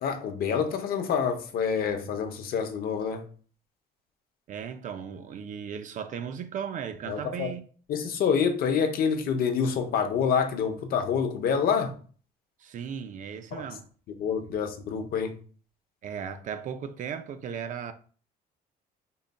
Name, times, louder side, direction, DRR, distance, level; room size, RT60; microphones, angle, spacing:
voice 1, 0.0-3.3 7.1-7.5 7.9-12.0 13.5-13.6 14.2-15.4, left 6 dB, 60° left, 0.7 m, -27 dB
voice 2, 4.5-7.6 12.6-13.9 14.2-14.3 16.0-17.9, right 7 dB, 50° right, 0.5 m, -36 dB
4.0 x 3.8 x 2.2 m
cardioid pair, 110°, 17 cm